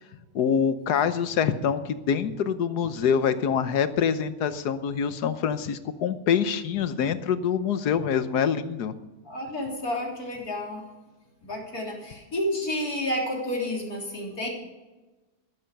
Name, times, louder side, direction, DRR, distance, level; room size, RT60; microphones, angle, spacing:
voice 1, 0.3-8.9, left 7 dB, 85° left, 12 dB, 1.5 m, -25 dB
voice 2, 9.3-10.8 11.4-14.5, left 1 dB, 70° left, -1 dB, 4.0 m, -30 dB
13.5 x 11.5 x 5.3 m, 1.1 s
omnidirectional pair, 1.7 m